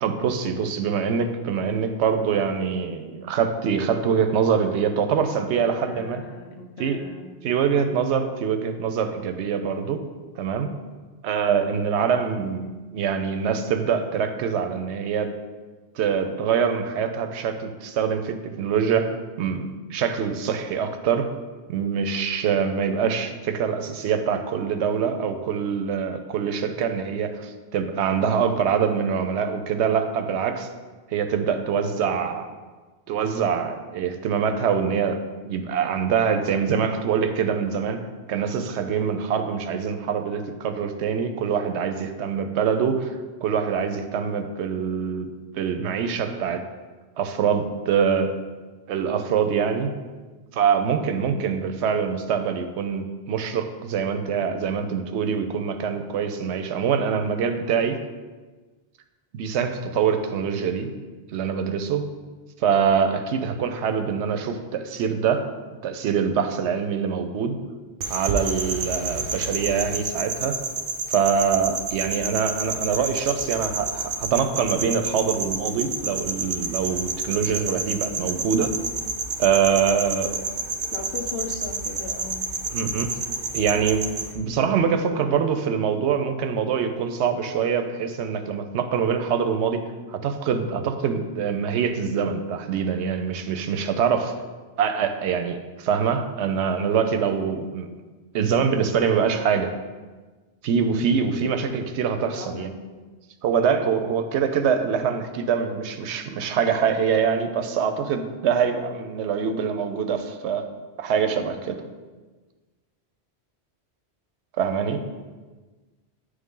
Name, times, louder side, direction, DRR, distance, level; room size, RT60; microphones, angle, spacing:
voice 1, 0.0-6.2 6.8-7.0 7.4-10.0 10.4-10.7 11.2-15.3 16.0-21.3 21.7-30.7 31.1-32.5 33.1-38.0 38.3-43.2 43.4-46.7 47.2-48.3 48.9-49.9 50.5-58.0 59.3-60.9 61.3-62.1 62.6-65.5 65.8-67.6 68.1-70.6 71.1-78.7 79.4-80.4 82.7-83.1 83.5-84.1 84.3-89.8 90.1-94.3 94.8-97.9 98.3-99.7 100.6-102.7 103.4-110.7 111.0-111.8 114.6-115.0, right 7 dB, 85° right, 8 dB, 0.9 m, -24 dB
voice 2, 5.5-7.3 80.9-82.5 102.3-102.9, left 3 dB, 70° left, 3 dB, 1.0 m, -37 dB
sound 1, 68.0-84.3, right 3 dB, 60° right, 0.8 m, -30 dB
9.2 x 3.3 x 3.7 m, 1.3 s
omnidirectional pair, 1.1 m